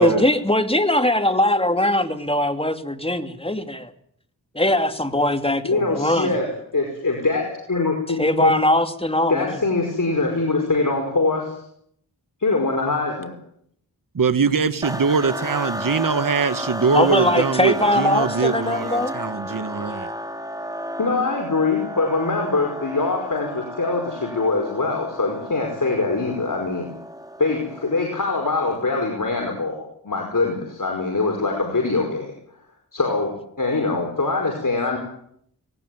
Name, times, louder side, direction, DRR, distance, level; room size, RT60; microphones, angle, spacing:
voice 1, 0.0-3.9 4.5-6.3 8.2-9.6 16.9-19.1, left 1 dB, 15° left, 8 dB, 2.6 m, -21 dB
voice 2, 5.6-8.6 9.3-11.5 12.4-13.3 19.6-19.9 21.0-26.9 27.4-32.3 32.9-35.0, left 3 dB, 55° left, 2 dB, 5.1 m, -23 dB
voice 3, 14.1-20.1, right 5 dB, 55° right, 11 dB, 1.5 m, -22 dB
sound 1, 14.8-28.2, equal, 10° right, 3.8 m, -33 dB
19.5 x 18.5 x 9.5 m, 0.67 s
cardioid pair, 50°, 38 cm